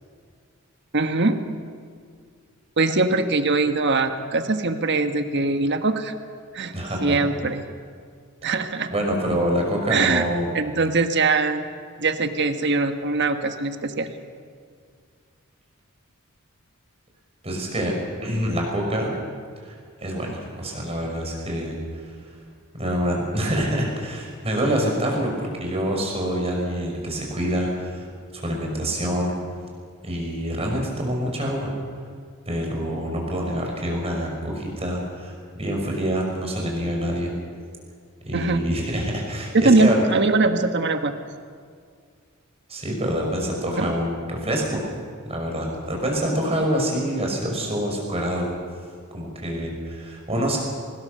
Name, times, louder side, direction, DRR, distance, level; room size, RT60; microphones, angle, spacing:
voice 1, 0.9-1.6 2.8-6.1 6.5-6.7 7.0-7.6 8.4-8.9 9.9-10.2 10.5-11.6 12.0-14.1 38.3-38.6 39.5-41.1 43.8-43.9, right 3 dB, 55° right, 7 dB, 1.4 m, -22 dB
voice 2, 6.7-7.2 8.9-10.5 17.4-19.2 19.6-22.1 22.7-28.1 28.3-29.3 30.0-31.7 32.5-37.3 38.2-40.0 42.7-44.8 45.3-48.5 49.1-50.6, equal, 30° right, 0 dB, 5.8 m, -26 dB
24.0 x 20.5 x 6.8 m, 2.1 s
head